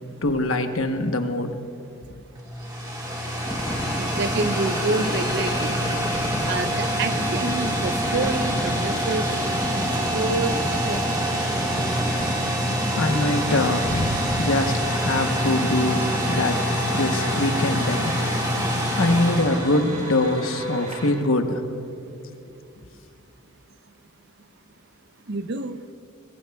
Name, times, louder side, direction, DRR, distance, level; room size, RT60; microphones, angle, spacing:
voice 1, 0.2-1.6 13.0-16.6 16.9-18.5 19.0-21.6, left 2 dB, 85° left, 6 dB, 1.0 m, -23 dB
sound 1, 2.3-20.5, equal, 20° right, 1.8 m, -25 dB
sound 2, 3.4-12.3, left 1 dB, 20° left, 1.0 m, -33 dB
voice 2, 4.0-5.7 6.5-9.3 9.8-10.6 10.9-11.0 25.3-25.8, right 3 dB, 55° right, 10 dB, 0.7 m, -28 dB
sound 3, 13.0-21.1, right 1 dB, 35° right, 2.1 m, -38 dB
22.5 x 21.0 x 2.3 m, 2.6 s
head